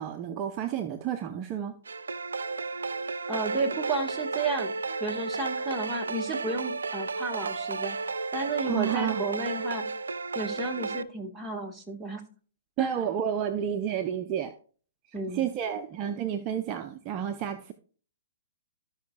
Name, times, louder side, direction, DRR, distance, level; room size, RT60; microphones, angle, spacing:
voice 1, 0.0-1.7 8.7-9.2 12.8-14.5 15.1-17.7, right 9 dB, 35° right, 0.6 m, -31 dB
sound 1, 1.9-11.0, right 4 dB, 80° right, 0.5 m, -33 dB
voice 2, 3.3-4.7 5.0-8.0 8.3-9.8 10.3-12.2 12.8-13.0 15.1-15.4, right 3 dB, 5° right, 1.6 m, -32 dB
14.5 x 5.6 x 2.3 m
hypercardioid pair, 125°, 0 cm